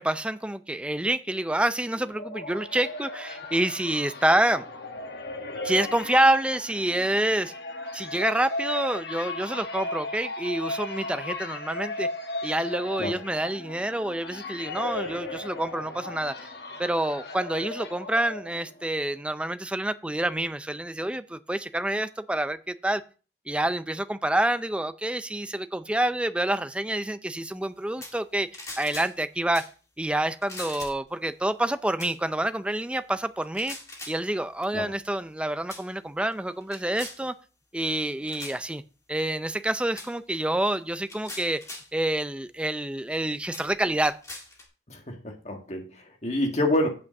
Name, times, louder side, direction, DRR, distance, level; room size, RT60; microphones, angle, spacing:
voice 1, 0.0-4.6 5.6-7.5 7.9-12.1 12.4-16.5 16.8-23.0 23.5-28.5 28.8-29.7 30.0-33.8 34.1-37.3 37.7-38.8 39.1-41.6 41.9-44.2, right 1 dB, 5° right, 11 dB, 0.4 m, -27 dB
sound 1, 1.9-18.9, left 2 dB, 65° left, 1.3 m, -36 dB
sound 2, 28.0-28.2 28.5-29.1 29.5-29.7 30.4-31.1 32.0-32.2 33.4-34.2 35.0-35.3 35.7-35.9 36.3-37.2 38.3-38.6 40.0-40.1 40.9-41.9 42.7-42.8 43.5-44.7, left 2 dB, 20° left, 2.0 m, -41 dB
voice 2, 44.9-46.9, left 1 dB, 40° left, 3 dB, 1.8 m, -28 dB
8.4 x 5.1 x 6.4 m, 0.35 s
head